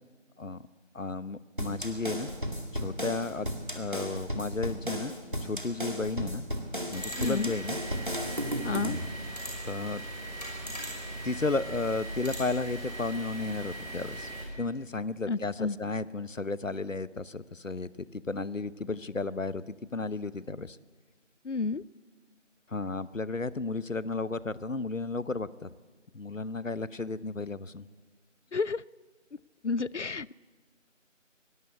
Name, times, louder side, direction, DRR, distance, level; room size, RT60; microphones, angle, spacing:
voice 1, 0.9-2.3 2.7-5.1 5.4-6.4 6.9-7.8 9.6-10.0 11.2-14.3 14.6-20.8 22.7-25.7 26.1-27.9, left 3 dB, 85° left, 17 dB, 1.0 m, -33 dB
sound 1, 1.6-9.1, equal, 40° right, 2.0 m, -35 dB
sound 2, 6.9-14.4, right 1 dB, 35° left, 6.2 m, -39 dB
voice 2, 7.2-7.5 8.6-9.0 15.3-15.8 21.4-21.8 28.5-28.8 29.6-30.3, left 4 dB, 65° left, 23 dB, 0.6 m, -31 dB
22.0 x 18.0 x 8.3 m, 1.4 s
figure-of-eight pair, 180°, 38 cm